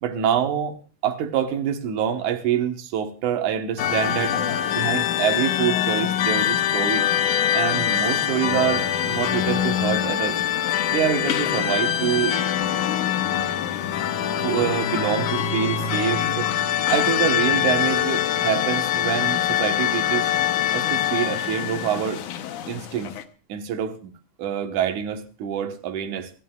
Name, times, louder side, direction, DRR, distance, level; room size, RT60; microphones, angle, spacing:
voice 1, 0.0-4.4 4.7-7.0 7.5-10.4 10.9-12.4 14.4-16.5 16.9-20.3 20.7-22.2 22.7-23.1 23.5-24.1 24.4-26.3, right 9 dB, 70° right, 2.7 m, -26 dB
sound 1, 3.8-23.2, left 10 dB, 75° left, 2.4 m, -24 dB
27.5 x 13.5 x 2.4 m
omnidirectional pair, 3.7 m